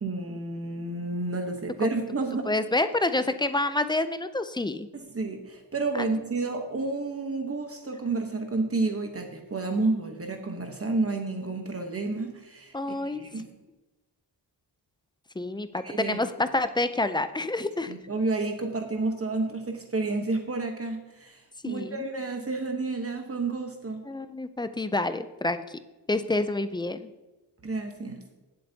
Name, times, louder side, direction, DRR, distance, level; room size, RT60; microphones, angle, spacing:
voice 1, 0.0-2.5 4.9-13.5 15.8-16.2 17.9-24.0 27.6-28.2, right 3 dB, 35° right, 4 dB, 1.0 m, -30 dB
voice 2, 2.5-4.9 5.9-6.0 12.7-13.2 15.4-17.9 21.6-22.0 24.1-25.6 26.1-27.1, left 2 dB, 10° left, 11 dB, 0.3 m, -28 dB
17.0 x 7.8 x 2.8 m, 1.1 s
wide cardioid pair, 165°, 42 cm